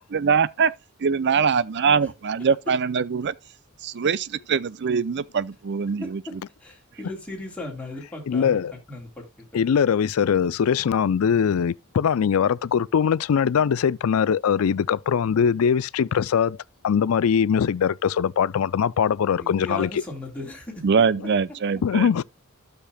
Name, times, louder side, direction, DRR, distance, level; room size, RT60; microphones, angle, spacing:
voice 1, 0.1-0.7 1.0-3.3 3.8-6.4 20.8-22.2, right 6 dB, 55° right, 0.5 m, -23 dB
voice 2, 6.6-8.6 8.9-9.5 19.4-20.8, left 2 dB, 5° left, 3.2 m, -36 dB
voice 3, 8.3-8.7 9.5-16.6 16.8-19.9 21.8-22.2, left 7 dB, 75° left, 0.4 m, -21 dB
13.0 x 6.7 x 2.2 m
head